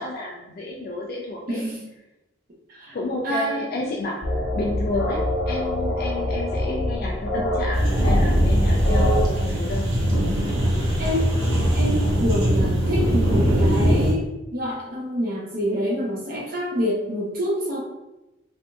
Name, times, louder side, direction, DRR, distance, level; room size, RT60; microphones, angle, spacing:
voice 1, 0.0-1.6 2.9-10.0, left 2 dB, 45° left, -2 dB, 0.3 m, -31 dB
voice 2, 1.5-1.8 2.7-3.0 3.2-3.6 11.0-17.8, equal, 45° right, -2 dB, 0.7 m, -27 dB
sound 1, 4.2-9.3, equal, 90° left, 0.8 m, -23 dB
sound 2, 7.7-14.1, equal, 85° right, 0.9 m, -21 dB
3.5 x 2.5 x 2.3 m, 0.98 s
head